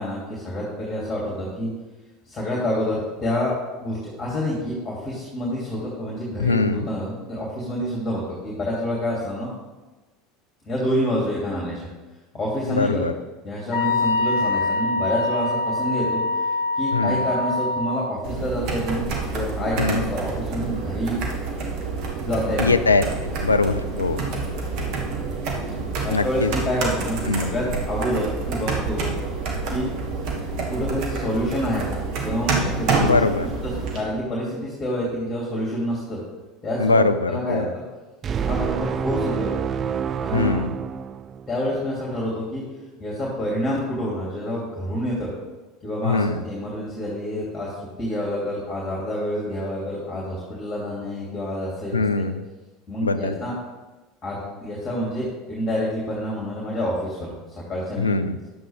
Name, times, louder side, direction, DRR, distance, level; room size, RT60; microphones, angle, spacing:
voice 1, 0.0-1.7 2.3-3.5 3.8-9.5 10.6-11.9 12.3-13.0 13.4-16.2 16.8-19.0 19.3-21.2 22.2-22.8 26.0-29.0 29.7-29.9 30.7-33.1 33.9-36.2 36.6-37.0 37.3-37.7 38.4-39.5 40.2-40.7 41.5-42.6 43.0-45.3 45.8-47.7 48.0-51.9 52.9-53.6 54.2-57.3 57.6-58.1, equal, 30° left, -4 dB, 2.7 m, -27 dB
voice 2, 6.4-6.9 12.7-13.1 16.9-17.2 19.8-20.1 22.6-24.2 26.1-26.5 27.3-27.5 33.0-33.5 36.8-37.7 40.3-40.7 46.0-46.4 51.9-52.4 53.0-53.4 58.0-58.4, left 3 dB, 85° left, 12 dB, 0.4 m, -22 dB
Wind instrument woodwind instrument, 13.7-18.1, left 2 dB, 55° left, 1.3 m, -24 dB
sound 1, 18.2-34.0, right 4 dB, 55° right, 1.5 m, -28 dB
sound 2, 38.2-41.7, right 7 dB, 35° right, 0.4 m, -27 dB
10.5 x 7.8 x 3.5 m, 1.2 s
figure-of-eight pair, 75°, 0 cm